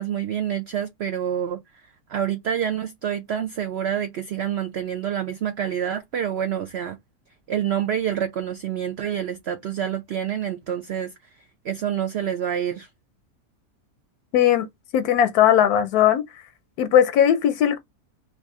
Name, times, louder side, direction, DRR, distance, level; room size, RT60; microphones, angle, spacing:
voice 1, 0.0-1.6 2.1-7.0 7.5-11.1 11.6-12.9, right 9 dB, 70° right, 0.6 m, -27 dB
voice 2, 14.3-14.7 14.9-16.2 16.8-17.8, left 10 dB, 85° left, 1.1 m, -18 dB
3.2 x 2.5 x 3.6 m
omnidirectional pair, 1.6 m